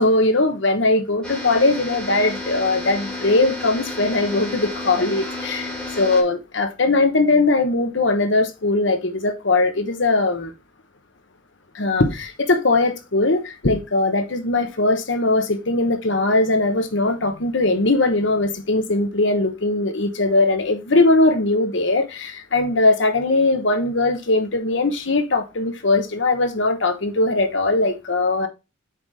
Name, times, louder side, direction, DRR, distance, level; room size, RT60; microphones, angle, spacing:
voice 1, 0.0-10.5 11.7-28.5, left 2 dB, 65° left, 1.1 m, -20 dB
sound 1, 1.2-6.2, left 2 dB, 5° left, 3.3 m, -31 dB
7.3 x 5.0 x 4.1 m
head